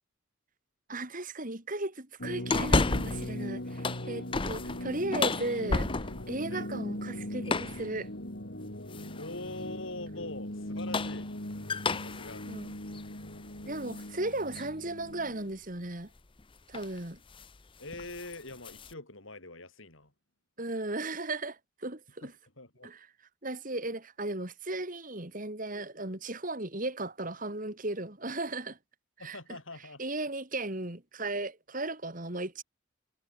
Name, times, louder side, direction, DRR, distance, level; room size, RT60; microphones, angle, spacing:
voice 1, 0.9-5.9 6.3-8.1 12.5-12.7 13.6-16.1 16.7-17.2 20.6-22.3 22.8-23.1 23.4-28.8 29.2-29.6 30.0-32.6, right 2 dB, 40° right, 2.8 m, -36 dB
sound 1, 2.2-15.5, left 1 dB, 55° left, 3.4 m, -40 dB
sound 2, 2.5-3.3 3.7-6.4 7.4-7.9 8.9-9.3 10.6-14.1 14.5-14.6 16.2-16.4 16.7-17.0 17.3-17.5 17.9-18.9, left 3 dB, 25° left, 0.7 m, -32 dB
voice 2, 4.5-4.9 6.5-6.7 9.2-11.3 12.0-12.4 13.8-14.1 17.8-20.1 22.2-22.3 22.6-22.9 29.2-30.0, left 2 dB, 70° left, 6.3 m, -43 dB
head